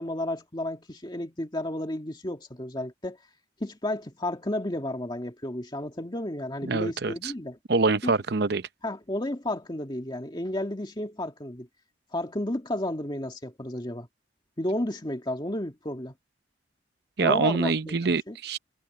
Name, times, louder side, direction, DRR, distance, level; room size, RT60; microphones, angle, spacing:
voice 1, 0.0-3.2 3.6-7.6 8.0-8.1 8.8-11.7 12.1-14.1 14.6-16.1 17.2-18.0 18.3-18.4, left 1 dB, 25° left, 2.1 m, -32 dB
voice 2, 6.6-7.3 7.7-8.7 17.2-18.6, right 4 dB, 60° right, 0.7 m, -25 dB
head